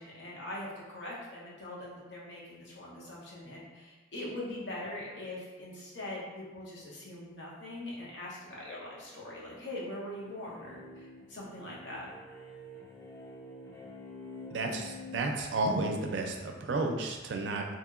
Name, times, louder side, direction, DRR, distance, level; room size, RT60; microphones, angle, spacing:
voice 1, 0.0-12.1, left 1 dB, 80° left, -5 dB, 0.8 m, -42 dB
sound 1, 9.8-15.2, left 2 dB, 15° left, 0.4 m, -48 dB
voice 2, 14.5-17.7, right 2 dB, 75° right, 3 dB, 0.4 m, -32 dB
2.8 x 2.8 x 2.4 m, 1.2 s
head